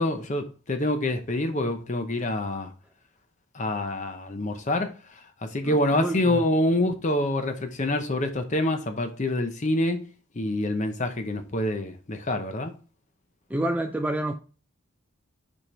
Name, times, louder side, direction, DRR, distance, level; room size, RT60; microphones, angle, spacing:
voice 1, 0.0-2.7 3.5-4.9 5.4-10.1 10.4-12.7, left 1 dB, 35° left, 0.7 m, -26 dB
voice 2, 5.6-6.4 13.5-14.3, right 1 dB, 5° right, 0.3 m, -28 dB
5.0 x 4.4 x 4.3 m
head